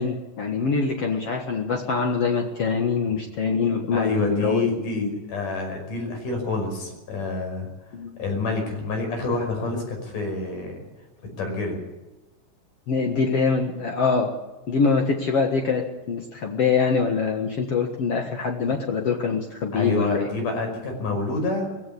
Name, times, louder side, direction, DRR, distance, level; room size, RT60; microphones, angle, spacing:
voice 1, 0.0-4.7 5.0-5.1 7.9-8.2 12.9-14.3 14.7-20.3, left 5 dB, 55° left, 3 dB, 2.4 m, -24 dB
voice 2, 3.9-10.8 11.4-11.8 19.7-21.7, left 3 dB, 85° left, 3 dB, 7.2 m, -28 dB
20.5 x 16.5 x 8.6 m, 1.1 s
omnidirectional pair, 3.6 m